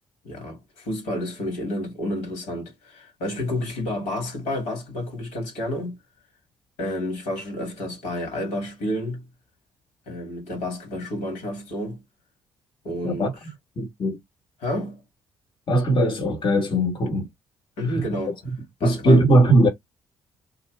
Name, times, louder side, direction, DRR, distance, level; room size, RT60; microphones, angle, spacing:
voice 1, 0.2-6.0 6.8-9.2 10.1-12.0 12.8-13.3 14.6-15.0 17.8-18.4 18.8-19.2, left 1 dB, 75° left, 2.4 m, -30 dB
voice 2, 13.8-14.2 15.7-17.3 17.9-18.0 18.8-19.7, right 1 dB, 45° left, 1.5 m, -19 dB
3.7 x 2.6 x 3.3 m
hypercardioid pair, 45°, 12 cm